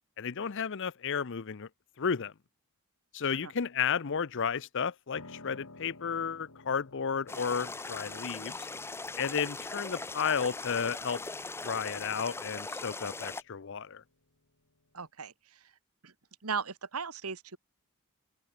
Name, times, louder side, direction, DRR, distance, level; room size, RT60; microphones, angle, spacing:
voice 1, 0.2-1.7 2.0-2.3 3.1-8.6 9.2-11.2 11.6-14.0, left 6 dB, 55° left, 0.6 m, -33 dB
Piano, 5.2-15.1, left 2 dB, 75° left, 2.9 m, -56 dB
sound 1, 7.3-13.4, left 3 dB, 10° left, 0.6 m, -40 dB
voice 2, 14.9-15.7 16.0-16.1 16.4-17.6, right 5 dB, 75° right, 1.7 m, -37 dB
open air
head